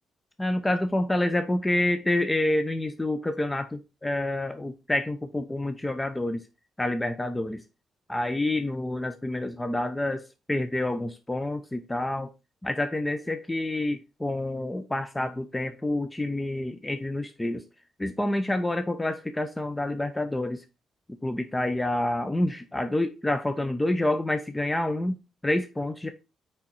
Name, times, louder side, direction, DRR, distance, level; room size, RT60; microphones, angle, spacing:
voice 1, 0.4-6.4 6.8-7.6 8.1-12.3 12.6-17.6 18.0-20.6 21.2-26.1, left 1 dB, 15° left, 8 dB, 0.7 m, -28 dB
5.7 x 4.9 x 4.3 m, 0.28 s
supercardioid pair, 55°, 0 cm